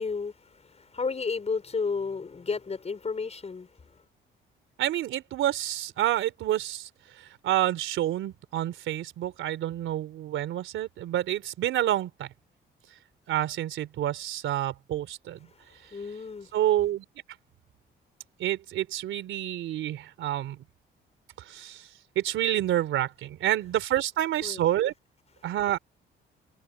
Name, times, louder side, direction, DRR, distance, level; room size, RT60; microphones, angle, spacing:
voice 1, 0.0-3.7 15.8-16.5 24.4-24.6, left 4 dB, 35° left, 4.6 m, -32 dB
voice 2, 4.8-6.9 7.4-12.3 13.3-15.4 16.5-17.0 18.4-20.6 21.5-21.8 22.1-24.9 25.4-25.8, right 12 dB, 80° right, 3.3 m, -28 dB
cardioid pair, 90°, 20 cm